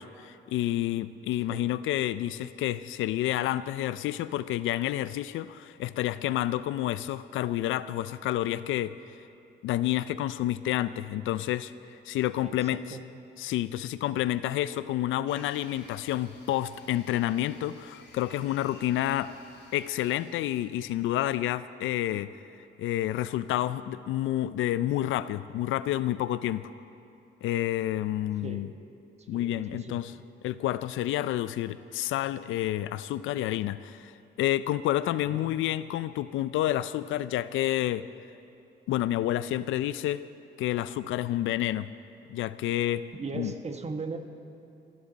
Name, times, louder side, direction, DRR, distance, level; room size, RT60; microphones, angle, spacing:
voice 1, 0.0-9.0 9.6-11.7 12.1-13.0 13.4-19.3 19.7-22.3 22.8-26.7 27.4-28.7 29.3-30.1 30.4-34.1 34.4-38.1 38.9-40.3 40.6-41.9 42.3-43.1 43.3-43.5, left 13 dB, 85° left, 15 dB, 0.5 m, -29 dB
voice 2, 12.4-13.0 28.4-28.7 29.3-30.0 35.3-35.5 43.1-44.2, right 4 dB, 35° right, 6 dB, 1.4 m, -38 dB
sound 1, 15.3-20.8, left 3 dB, 60° left, 3.6 m, -54 dB
27.5 x 11.0 x 4.0 m, 2.9 s
cardioid pair, 90°, 20 cm